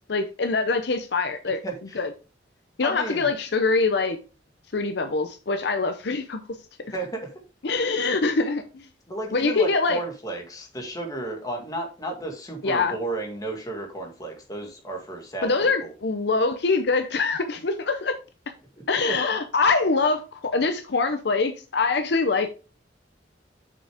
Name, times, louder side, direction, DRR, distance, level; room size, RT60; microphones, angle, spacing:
voice 1, 0.1-1.6 1.9-2.1 2.8-4.2 4.7-6.4 7.6-8.9 9.3-10.0 12.6-13.0 15.4-18.1 18.9-22.5, left 4 dB, 65° left, 0.7 m, -24 dB
voice 2, 1.6-2.0 2.8-3.3 6.9-7.3 9.1-15.9 19.1-19.2, right 2 dB, 20° left, 1.8 m, -33 dB
6.8 x 6.2 x 3.5 m
head